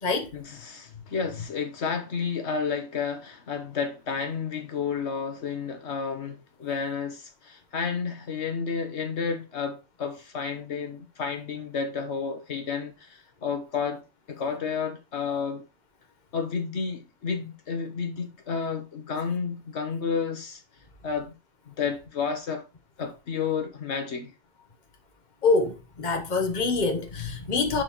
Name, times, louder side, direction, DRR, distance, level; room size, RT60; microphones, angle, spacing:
voice 1, 0.3-14.0 14.3-15.6 16.3-20.6 21.0-21.3 21.7-22.6 23.0-24.3, left 5 dB, 70° left, 1.3 m, -31 dB
voice 2, 25.4-27.8, left 3 dB, 40° left, 1.3 m, -25 dB
11.0 x 3.9 x 3.1 m
omnidirectional pair, 1.2 m